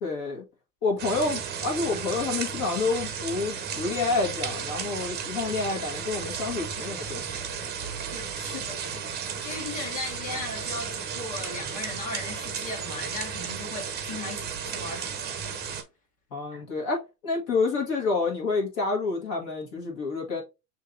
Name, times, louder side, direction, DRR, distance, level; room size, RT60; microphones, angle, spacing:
voice 1, 0.0-0.4 0.8-7.2 16.3-20.4, left 4 dB, 45° left, 1.7 m, -28 dB
sound 1, 1.0-15.8, right 7 dB, 20° right, 0.7 m, -34 dB
voice 2, 8.1-15.4 16.5-16.7, left 3 dB, 15° left, 1.6 m, -38 dB
6.3 x 2.8 x 2.5 m
hypercardioid pair, 110°, 48 cm